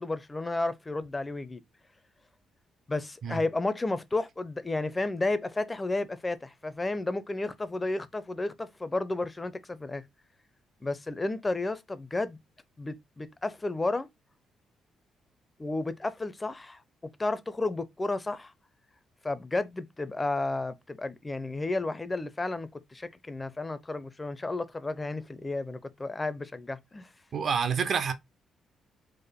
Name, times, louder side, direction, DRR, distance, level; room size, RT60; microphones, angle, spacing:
voice 1, 0.0-1.6 2.9-10.0 10.8-12.4 12.8-14.1 15.6-18.5 19.2-27.1, left 2 dB, 20° left, 0.4 m, -32 dB
voice 2, 27.3-28.1, right 6 dB, 55° right, 0.6 m, -28 dB
3.6 x 2.0 x 3.4 m
cardioid pair, 90°, 0 cm